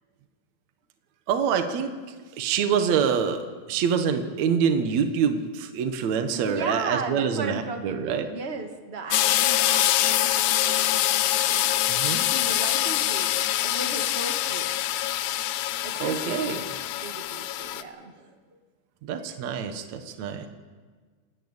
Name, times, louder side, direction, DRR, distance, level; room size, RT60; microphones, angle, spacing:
voice 1, 1.3-1.9 2.4-8.3 11.9-12.2 16.0-16.6 19.0-20.5, right 7 dB, 65° right, 7 dB, 2.4 m, -26 dB
voice 2, 6.3-11.7 12.2-14.7 15.8-16.7 17.0-18.4, right 3 dB, 30° right, 5 dB, 1.3 m, -36 dB
sound 1, 9.1-17.8, left 13 dB, 80° left, 2.1 m, -24 dB
30.0 x 10.0 x 8.8 m, 1.5 s
omnidirectional pair, 3.6 m